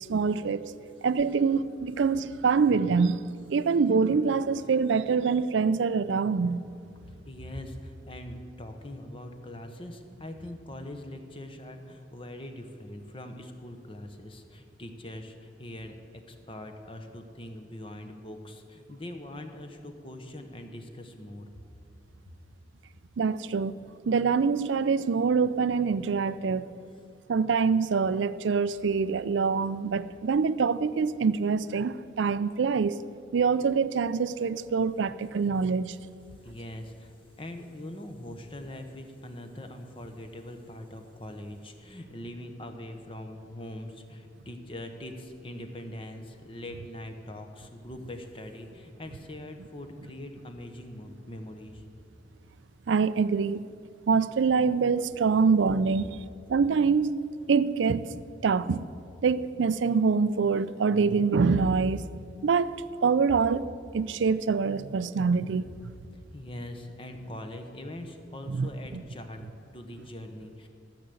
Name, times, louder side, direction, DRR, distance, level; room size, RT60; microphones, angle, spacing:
voice 1, 0.1-0.6 1.0-3.2 3.5-6.6 23.2-23.7 24.1-26.7 27.3-32.9 33.3-36.0 52.9-53.6 54.1-56.2 56.5-57.2 57.5-58.1 58.4-58.9 59.2-62.0 62.4-62.8 63.0-65.9 68.5-69.0, right 5 dB, 80° right, 0.4 m, -25 dB
voice 2, 7.0-16.0 16.3-21.6 36.4-51.8 65.7-65.8 66.3-70.7, left 1 dB, 30° left, 0.9 m, -42 dB
13.5 x 6.8 x 7.8 m
head